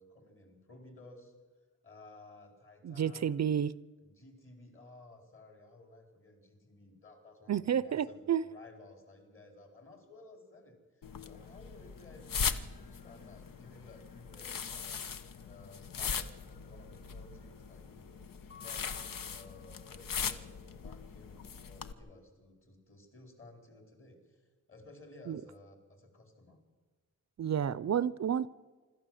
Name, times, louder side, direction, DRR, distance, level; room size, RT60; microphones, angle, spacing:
voice 1, 0.0-1.3 1.8-3.4 4.0-15.2 15.4-24.4 24.7-26.6, left 2 dB, 40° left, 4 dB, 4.4 m, -56 dB
voice 2, 2.8-3.7 7.5-8.4 25.3-25.4 27.4-28.5, right 9 dB, 55° right, 18 dB, 0.5 m, -30 dB
sound 1, 11.0-21.9, left 6 dB, 80° left, 1.1 m, -40 dB
Mallet percussion, 18.5-20.3, left 5 dB, 15° right, 0.7 m, -57 dB
25.5 x 13.5 x 7.8 m, 1.4 s
wide cardioid pair, 135°, 33 cm